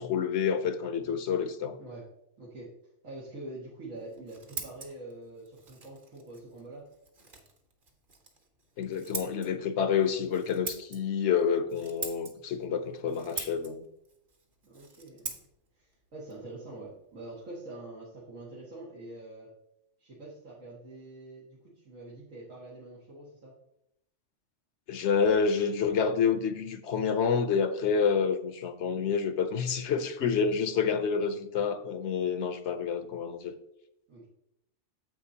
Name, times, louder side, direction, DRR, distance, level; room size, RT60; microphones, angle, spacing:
voice 1, 0.0-1.8 8.8-13.8 24.9-33.5, left 6 dB, 65° left, 0.9 m, -28 dB
voice 2, 2.4-2.7 3.0-6.9 14.6-15.4 15.8-19.5 20.0-23.6 34.1-34.3, right 2 dB, 90° right, 2.1 m, -45 dB
Scissors, 4.0-17.5, right 3 dB, 45° right, 1.2 m, -45 dB
9.4 x 7.4 x 2.8 m
omnidirectional pair, 1.3 m